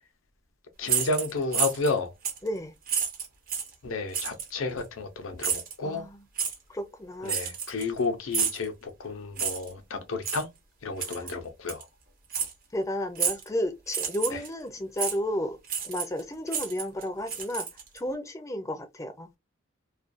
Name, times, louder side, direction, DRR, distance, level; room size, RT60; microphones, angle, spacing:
voice 1, 0.8-2.1 3.8-6.1 7.2-10.5 10.8-11.9 14.3-14.4, left 3 dB, 90° left, 0.6 m, -31 dB
sound 1, 0.8-1.9 2.2-2.5 2.9-3.7 4.1-4.5 5.4-5.7 6.4-6.5 7.3-8.0 8.3-8.6 9.4-9.7 10.2-10.4 11.0-11.3 11.7-11.8 12.3-12.5 13.2-13.5 13.9-14.5 15.0-15.2 15.7-16.2 16.5-18.0, right 7 dB, 45° right, 0.7 m, -30 dB
voice 2, 2.4-2.7 5.8-6.2 6.7-7.4 11.1-11.3 12.7-15.6 15.8-17.7 17.9-19.3, left 1 dB, 15° left, 0.4 m, -32 dB
2.5 x 2.2 x 2.5 m
head